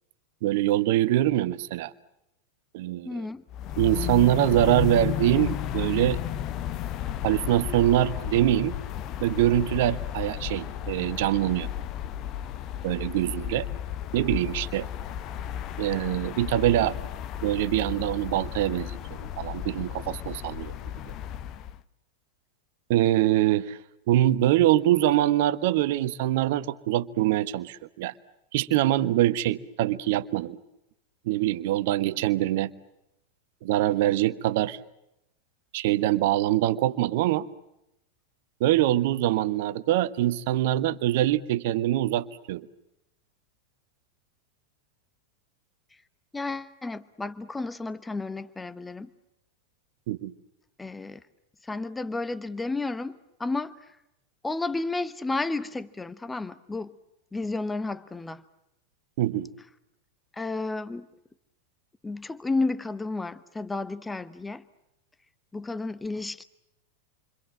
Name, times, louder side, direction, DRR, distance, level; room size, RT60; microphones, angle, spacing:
voice 1, 0.4-1.9 2.7-3.3 3.8-6.2 7.2-8.7 9.2-11.7 12.8-13.7 14.1-14.9 15.8-17.0 17.4-20.7 22.9-23.8 24.1-28.1 28.5-30.6 31.2-32.7 33.6-34.8 35.7-37.5 38.6-42.7 50.1-50.3 59.2-59.5, right 14 dB, 50° right, 1.3 m, -24 dB
voice 2, 3.0-3.4 46.3-49.1 50.8-51.2 51.6-53.8 54.4-56.9 57.3-58.4 60.3-61.1 62.0-64.6 65.5-66.4, left 3 dB, 10° left, 1.0 m, -32 dB
sound 1, 3.5-21.8, left 10 dB, 35° left, 0.9 m, -33 dB
29.0 x 25.5 x 7.5 m
figure-of-eight pair, 90°, 0 cm